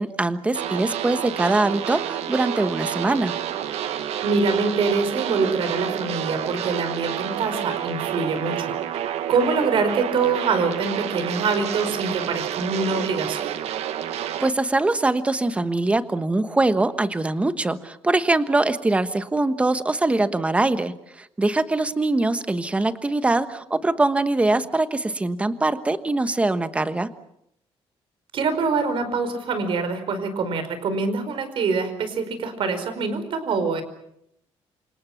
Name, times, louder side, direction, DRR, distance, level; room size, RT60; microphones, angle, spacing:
voice 1, 0.0-3.4 14.4-27.1, right 2 dB, 10° right, 11 dB, 1.3 m, -23 dB
sound 1, 0.5-14.5, right 10 dB, 80° right, 1.6 m, -29 dB
voice 2, 4.2-8.7 9.3-13.5 28.3-33.8, right 4 dB, 55° right, 10 dB, 4.8 m, -24 dB
29.0 x 26.5 x 5.9 m, 0.75 s
cardioid pair, 170°, 11 cm